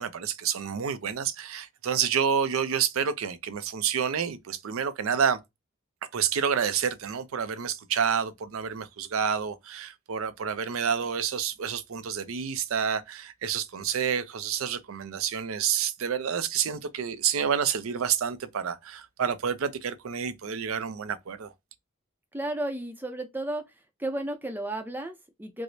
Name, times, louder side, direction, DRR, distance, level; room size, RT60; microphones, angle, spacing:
voice 1, 0.0-5.4 6.1-21.5, right 7 dB, 75° right, 0.5 m, -29 dB
voice 2, 22.3-23.7 24.0-25.6, right 1 dB, 10° right, 0.5 m, -33 dB
4.6 x 2.0 x 2.6 m
head